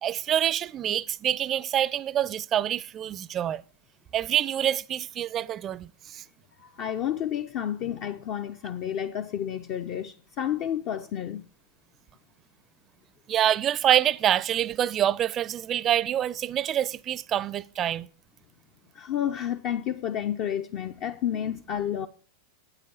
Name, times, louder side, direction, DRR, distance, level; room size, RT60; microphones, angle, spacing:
voice 1, 0.0-3.6 4.1-6.2 13.3-18.1, right 11 dB, 30° right, 0.5 m, -26 dB
voice 2, 6.6-11.4 18.9-22.1, left 10 dB, 40° left, 0.6 m, -30 dB
9.1 x 9.1 x 5.3 m
figure-of-eight pair, 90°, 0 cm